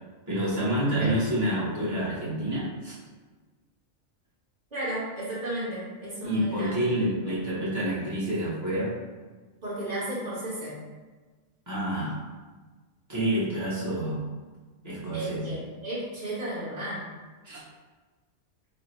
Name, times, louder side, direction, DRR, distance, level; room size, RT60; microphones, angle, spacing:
voice 1, 0.3-2.9 6.2-8.9 11.7-12.2 13.1-14.2 14.8-15.5 17.4-17.6, right 1 dB, 15° right, -10 dB, 1.1 m, -28 dB
voice 2, 4.7-6.9 9.6-10.8 15.1-17.0, right 1 dB, 35° right, -8 dB, 1.2 m, -33 dB
3.3 x 2.1 x 4.1 m, 1.3 s
omnidirectional pair, 1.4 m